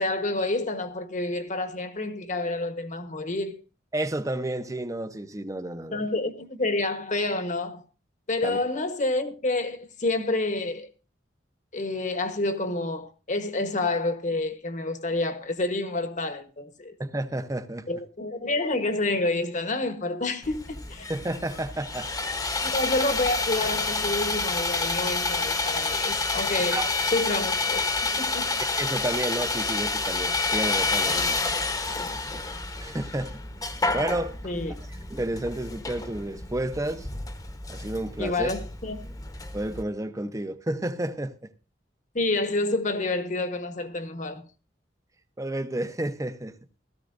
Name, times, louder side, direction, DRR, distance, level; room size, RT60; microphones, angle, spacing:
voice 1, 0.0-3.6 5.9-7.8 8.3-10.9 11.7-16.9 17.9-21.1 22.6-28.5 34.4-34.8 38.2-39.0 42.1-44.4, left 2 dB, 45° left, 1.2 m, -28 dB
voice 2, 3.9-6.1 8.4-8.6 17.0-17.9 21.1-22.1 22.7-22.8 26.7-26.9 28.8-31.4 32.8-33.4 33.9-34.4 35.1-37.1 37.7-38.5 39.5-41.5 45.4-46.6, right 1 dB, 20° right, 0.8 m, -31 dB
Sawing, 20.4-39.8, left 3 dB, 20° left, 1.1 m, -29 dB
16.5 x 14.0 x 2.6 m
head